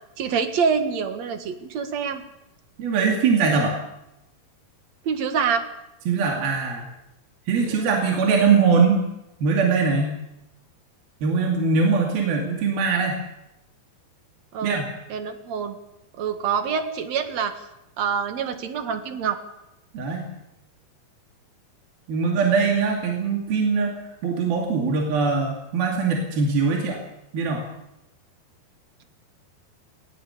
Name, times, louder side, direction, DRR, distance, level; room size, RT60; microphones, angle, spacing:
voice 1, 0.2-2.2 5.0-5.6 7.6-8.0 14.5-15.8 16.2-17.6 18.0-19.4, right 6 dB, 50° right, 7 dB, 2.6 m, -26 dB
voice 2, 2.8-3.8 6.1-6.9 7.5-9.0 9.4-10.2 11.2-13.2 14.6-14.9 19.9-20.3 22.1-24.0 24.2-27.0 27.3-27.7, right 5 dB, 70° right, 0 dB, 4.5 m, -21 dB
20.0 x 18.0 x 8.3 m, 0.87 s
omnidirectional pair, 4.5 m